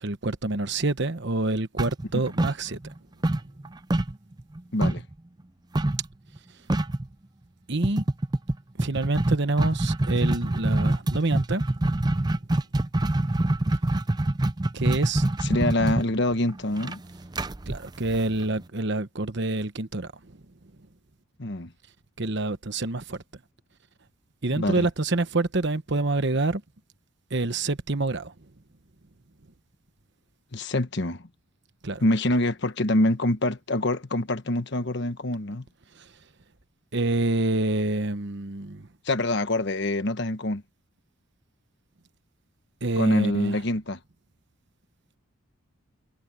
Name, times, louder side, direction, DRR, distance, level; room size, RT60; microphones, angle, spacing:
voice 1, 0.0-2.8 7.7-8.0 8.8-11.6 14.7-15.2 17.7-20.1 22.2-23.2 24.4-26.6 27.3-28.3 31.8-32.0 36.9-38.9 42.8-43.6, right 2 dB, 55° right, 1.1 m, -27 dB
sound 1, 1.8-3.0 3.2-5.1 5.8-6.1 6.4-6.5 6.7-7.1 7.8-18.6, right 1 dB, 20° right, 0.5 m, -25 dB
voice 2, 4.7-5.0 15.4-17.0 21.4-21.7 24.5-24.9 30.5-31.3 32.0-35.7 39.0-40.6 43.0-44.0, left 1 dB, 55° left, 1.2 m, -25 dB
head